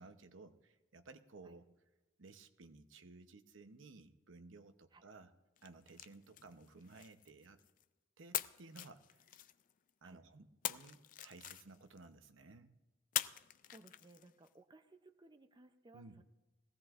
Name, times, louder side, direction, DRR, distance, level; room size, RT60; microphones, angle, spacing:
voice 1, 0.0-1.7 2.2-5.3 5.6-7.6 8.2-9.5 10.0-12.7 15.9-16.2, right 3 dB, 85° right, 8 dB, 0.8 m, -57 dB
sound 1, 5.6-7.8 8.3-9.9 10.6-12.1 13.1-14.5, left 12 dB, 45° left, 0.4 m, -44 dB
voice 2, 13.7-16.2, right 2 dB, 25° right, 8 dB, 0.5 m, -61 dB
20.5 x 16.0 x 2.5 m, 1.1 s
head